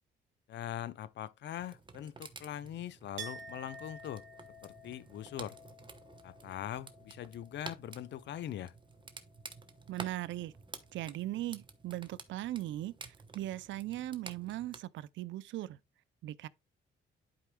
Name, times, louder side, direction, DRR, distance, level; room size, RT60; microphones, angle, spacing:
voice 1, 0.5-4.2 4.6-5.6 6.2-8.7, left 11 dB, 65° left, 0.5 m, -42 dB
sound 1, 1.6-14.8, right 4 dB, 25° right, 0.9 m, -51 dB
Chink clink, 3.2-8.7 9.0-9.9, right 3 dB, 85° right, 1.9 m, -51 dB
voice 2, 9.9-10.5 10.9-15.8 16.2-16.5, right 15 dB, 70° right, 0.4 m, -39 dB
11.5 x 4.8 x 2.2 m
cardioid pair, 90°, 20 cm